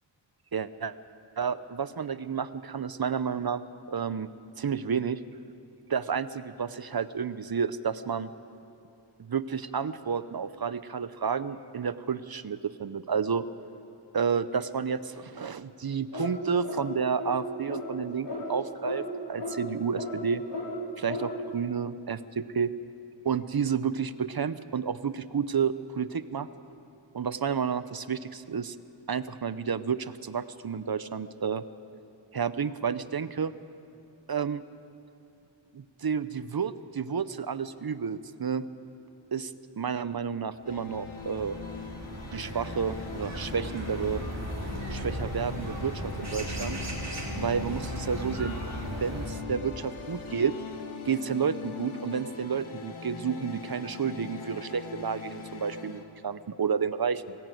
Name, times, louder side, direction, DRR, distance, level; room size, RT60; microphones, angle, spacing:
voice 1, 0.5-0.9 1.4-3.6 3.9-4.3 4.6-5.2 5.9-8.3 9.2-13.4 14.1-20.4 21.0-22.7 23.2-26.5 27.1-28.8 29.1-31.6 32.3-33.5 34.3-34.6 35.7-38.6 39.3-41.6 42.3-44.2 44.9-46.8 47.3-48.6 48.9-50.5 51.1-57.4, right 6 dB, 50° right, 14 dB, 0.7 m, -31 dB
sound 1, 16.1-16.4 16.6-16.8 17.2-17.4 17.7-17.9 18.3-18.4 18.8-19.0 19.4-19.6 20.0-20.1 20.5-20.7 21.1-21.3, left 3 dB, 60° left, 5.4 m, -35 dB
sound 2, 40.6-56.0, left 5 dB, 85° left, 1.7 m, -41 dB
sound 3, 40.6-49.3, right 1 dB, 35° right, 3.7 m, -37 dB
23.0 x 14.0 x 9.2 m, 2.7 s
wide cardioid pair, 85°, 47 cm